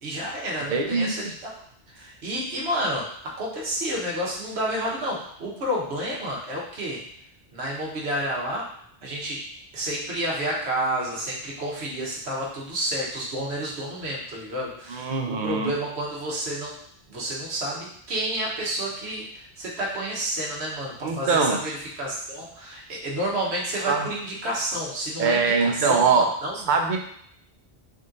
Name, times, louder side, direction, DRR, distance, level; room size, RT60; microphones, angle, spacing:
voice 1, 0.0-1.5 1.9-7.0 7.5-8.7 9.0-9.4 9.7-16.8 17.1-26.6, right 1 dB, 90° right, -3 dB, 1.3 m, -30 dB
voice 2, 0.7-1.3 14.9-15.7 21.0-21.6 23.9-24.1 25.2-26.3 26.5-27.0, right 5 dB, 55° right, 3 dB, 0.7 m, -23 dB
3.6 x 2.7 x 3.7 m, 0.66 s
omnidirectional pair, 1.1 m